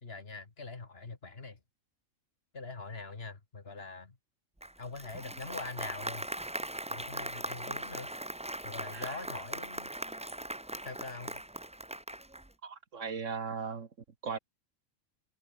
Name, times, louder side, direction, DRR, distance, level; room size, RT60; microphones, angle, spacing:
voice 1, 0.0-1.6 2.5-4.2 4.8-6.3 6.9-8.1 8.6-9.9 10.8-11.4, left 3 dB, 45° left, 2.2 m, -43 dB
Applause, 4.6-12.5, right 1 dB, 10° right, 0.5 m, -40 dB
voice 2, 12.6-13.9 14.2-14.4, right 5 dB, 60° right, 1.9 m, -37 dB
open air
omnidirectional pair, 1.4 m